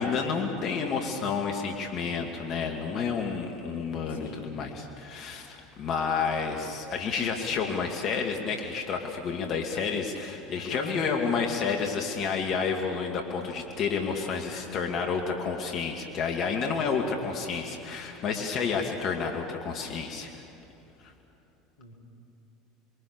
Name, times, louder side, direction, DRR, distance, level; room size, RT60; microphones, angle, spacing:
voice 1, 0.0-20.4 21.0-21.1, left 5 dB, 50° left, 2 dB, 2.6 m, -30 dB
voice 2, 4.1-4.5 10.5-11.5 17.0-17.2 21.8-22.0, left 1 dB, 90° left, 0 dB, 4.0 m, -43 dB
28.0 x 22.5 x 7.1 m, 3.0 s
hypercardioid pair, 75°, 0 cm